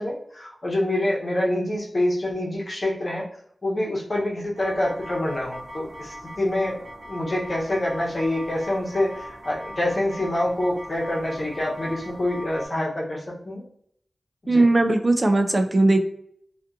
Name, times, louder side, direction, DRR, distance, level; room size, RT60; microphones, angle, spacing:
voice 1, 0.0-3.2 3.6-6.8 7.1-13.6 14.4-14.6, left 1 dB, 50° left, -4 dB, 0.9 m, -26 dB
sound 1, 4.5-12.7, equal, 80° right, 0.6 m, -40 dB
voice 2, 14.5-16.0, right 2 dB, 40° right, 6 dB, 0.3 m, -18 dB
2.6 x 2.4 x 2.3 m, 0.67 s
wide cardioid pair, 70°, 0 cm